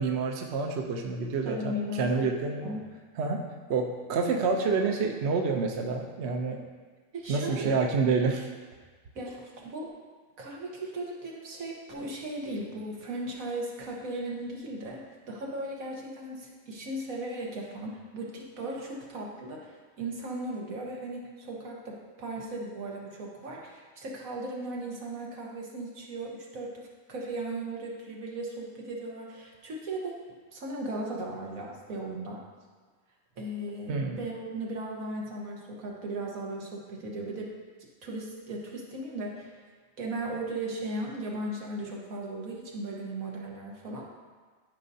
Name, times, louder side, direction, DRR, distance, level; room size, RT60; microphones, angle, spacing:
voice 1, 0.0-2.7 3.2-3.4 3.7-6.6 7.3-8.5 33.9-34.2, right 4 dB, 60° right, 2 dB, 0.9 m, -28 dB
voice 2, 1.4-2.9 7.1-7.8 9.1-9.9 10.4-30.2 30.5-32.4 33.4-37.5 38.0-39.6 40.0-44.1, right 1 dB, 85° right, -2 dB, 1.7 m, -37 dB
12.0 x 5.3 x 2.7 m, 1.4 s
omnidirectional pair, 1.4 m